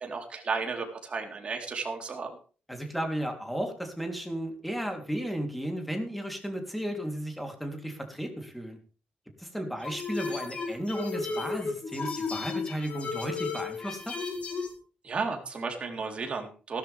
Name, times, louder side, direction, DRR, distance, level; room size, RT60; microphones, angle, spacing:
voice 1, 0.0-2.4 15.0-16.8, right 4 dB, 35° right, 3 dB, 4.0 m, -33 dB
voice 2, 2.7-8.8 9.4-14.1, equal, ahead, 4 dB, 3.5 m, -34 dB
sound 1, 9.8-14.7, left 4 dB, 40° left, 4.6 m, -34 dB
16.0 x 13.0 x 3.6 m, 0.37 s
cardioid pair, 140°, 3 cm